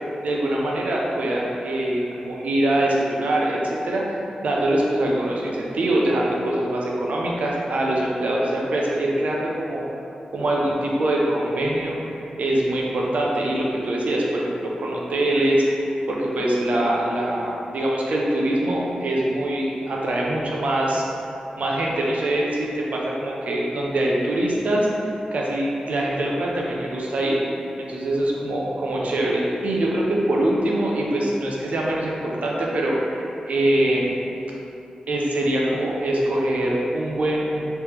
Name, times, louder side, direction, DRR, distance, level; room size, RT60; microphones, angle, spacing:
voice 1, 0.2-9.8 10.3-12.0 12.4-21.0 21.6-27.4 27.8-34.1 35.1-37.6, right 1 dB, 70° right, -3 dB, 0.6 m, -23 dB
3.2 x 3.0 x 3.3 m, 2.8 s
cardioid pair, 80°, 3 cm